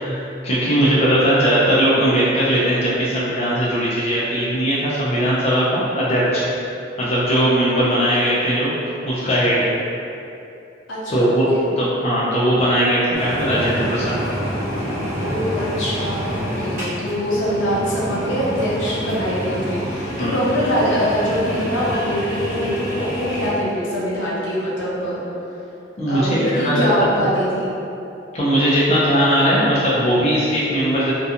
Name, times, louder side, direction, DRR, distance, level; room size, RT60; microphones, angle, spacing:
voice 1, 0.4-6.4 7.0-8.8 9.1-9.7 11.1-11.5 11.8-14.2 20.2-20.4 26.0-26.9 27.2-27.3 28.3-31.1, equal, 35° left, -9 dB, 0.4 m, -19 dB
voice 2, 10.9-11.7 15.2-25.2 26.1-27.7, equal, 80° left, -7 dB, 0.7 m, -23 dB
sound 1, 13.1-23.5, equal, 10° right, 0.8 m, -27 dB
2.4 x 2.2 x 2.7 m, 2.7 s
head